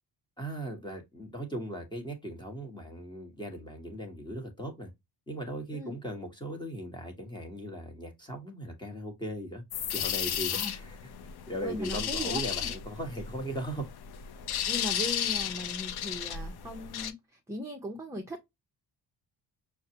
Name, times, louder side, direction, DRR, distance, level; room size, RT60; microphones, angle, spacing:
voice 1, 0.4-4.9 5.3-9.6 9.9-11.0 11.5-13.9, right 1 dB, 10° left, 1.2 m, -38 dB
sound 1, 9.7-17.1, left 9 dB, 65° left, 0.7 m, -34 dB
voice 2, 11.6-12.7 14.7-18.5, equal, 5° right, 0.7 m, -38 dB
6.3 x 2.2 x 2.7 m
cardioid pair, 175°, 41 cm